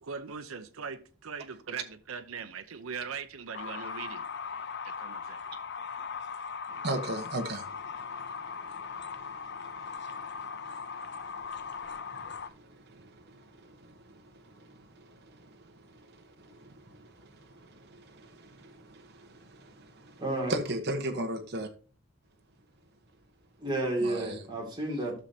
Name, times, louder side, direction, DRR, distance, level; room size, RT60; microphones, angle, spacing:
voice 1, 0.0-5.4, right 6 dB, 80° right, 0.7 m, -41 dB
sound 1, 3.5-12.5, left 6 dB, 50° left, 0.6 m, -39 dB
voice 2, 6.7-20.2 20.5-21.7 24.0-24.4, right 1 dB, 50° right, 1.2 m, -40 dB
voice 3, 20.2-20.5 23.6-25.2, right 1 dB, 20° right, 2.4 m, -31 dB
12.5 x 6.4 x 2.8 m
head